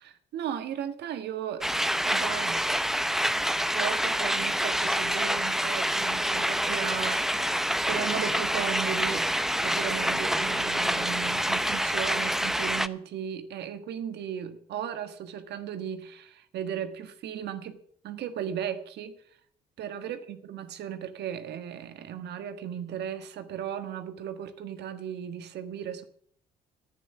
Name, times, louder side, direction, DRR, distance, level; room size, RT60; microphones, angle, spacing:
voice 1, 0.0-1.7 2.0-2.6 3.7-7.4 7.9-9.3 9.6-17.8 18.0-19.1 19.8-26.0, right 9 dB, 70° right, 9 dB, 1.5 m, -36 dB
sound 1, 1.6-12.9, equal, ahead, 0.8 m, -27 dB
11.0 x 9.1 x 8.9 m, 0.66 s
hypercardioid pair, 50°, 18 cm